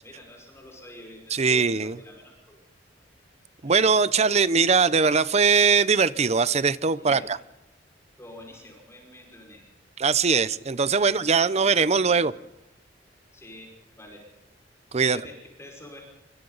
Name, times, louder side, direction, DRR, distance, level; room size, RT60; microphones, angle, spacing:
voice 1, 0.0-2.6 3.6-3.9 6.9-7.3 8.2-9.7 11.0-12.3 13.3-14.3 15.0-16.0, left 1 dB, 15° left, 1 dB, 5.5 m, -47 dB
voice 2, 1.3-2.0 3.6-7.4 10.0-12.3 14.9-15.2, right 5 dB, 35° right, 16 dB, 0.7 m, -21 dB
29.0 x 24.5 x 4.0 m, 0.96 s
head